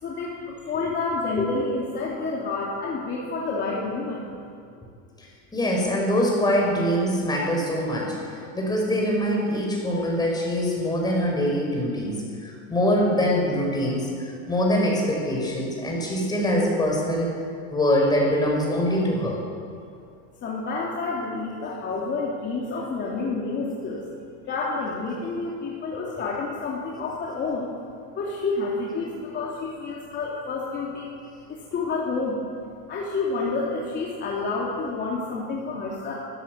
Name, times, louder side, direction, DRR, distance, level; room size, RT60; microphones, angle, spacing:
voice 1, 0.0-4.3 20.4-24.0 24.5-27.7 28.1-31.1 31.5-32.4 32.9-36.1, left 3 dB, 30° left, -4 dB, 3.1 m, -29 dB
voice 2, 5.5-8.2 8.5-17.3 17.7-19.4, equal, 10° left, -2 dB, 6.1 m, -23 dB
24.0 x 16.0 x 8.2 m, 2.4 s
supercardioid pair, 155°, 36 cm